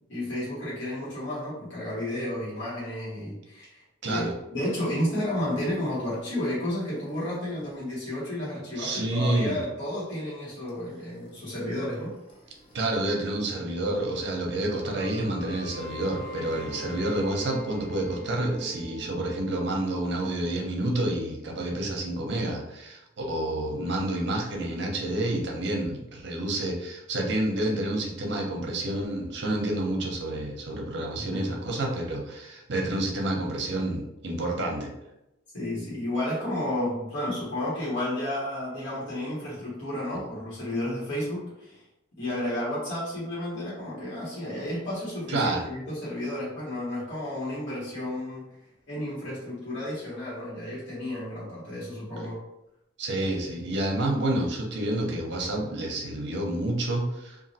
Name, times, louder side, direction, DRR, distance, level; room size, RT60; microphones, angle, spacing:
voice 1, 0.1-12.2 31.1-31.6 35.5-41.8 42.2-48.5 48.9-52.4, left 1 dB, 65° left, -8 dB, 1.2 m, -32 dB
voice 2, 4.0-4.3 8.8-9.6 12.7-34.9 45.3-45.7 53.0-57.5, right 1 dB, 60° right, 1 dB, 0.7 m, -29 dB
sound 1, 5.7-12.9 13.1-19.6, right 2 dB, 30° left, 0.6 m, -45 dB
3.0 x 2.4 x 2.8 m, 0.89 s
head